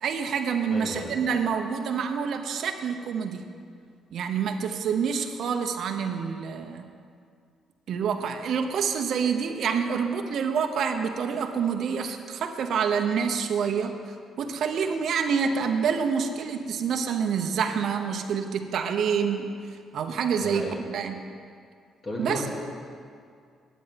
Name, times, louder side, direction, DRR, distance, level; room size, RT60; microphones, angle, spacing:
voice 1, 0.0-3.4 4.1-6.8 7.9-19.5 19.9-21.2 22.2-22.4, right 6 dB, 70° right, 5 dB, 0.9 m, -27 dB
voice 2, 0.7-1.1 20.4-20.8 22.0-22.5, left 1 dB, 35° left, -2 dB, 3.0 m, -34 dB
9.4 x 8.7 x 9.4 m, 2.2 s
cardioid pair, 90°, 0 cm